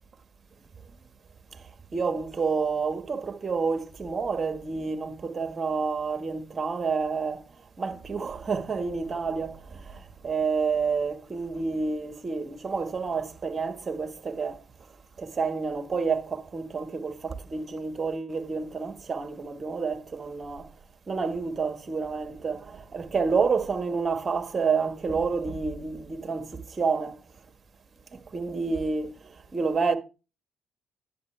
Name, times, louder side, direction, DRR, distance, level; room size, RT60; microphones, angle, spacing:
voice 1, 1.9-7.4 7.8-14.6 15.2-20.7 21.1-27.2 28.1-29.9, right 5 dB, 40° right, 1.5 m, -29 dB
10.5 x 7.9 x 3.3 m
hypercardioid pair, 50°, 0 cm